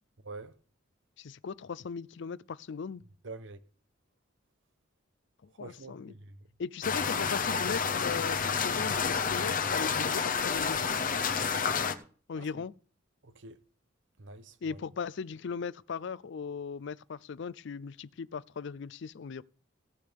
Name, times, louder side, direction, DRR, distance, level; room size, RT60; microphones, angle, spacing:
voice 1, 0.2-0.5 3.2-3.6 5.6-6.4 12.3-12.5 13.2-13.6 14.2-14.8, right 3 dB, 70° right, 0.9 m, -46 dB
voice 2, 1.2-3.1 5.4-6.1 6.6-11.0 12.3-12.7 14.6-19.4, left 5 dB, 65° left, 0.4 m, -38 dB
sound 1, 6.8-11.9, left 6 dB, 45° left, 0.9 m, -29 dB
17.5 x 8.3 x 3.5 m
head